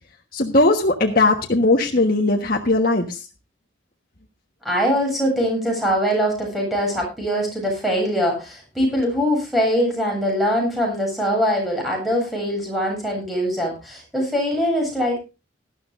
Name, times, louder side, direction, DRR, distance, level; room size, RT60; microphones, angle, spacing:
voice 1, 0.3-3.2, left 2 dB, 50° left, 1 dB, 1.4 m, -18 dB
voice 2, 4.6-15.2, equal, ahead, -1 dB, 7.6 m, -22 dB
18.5 x 13.0 x 2.6 m, 0.29 s
head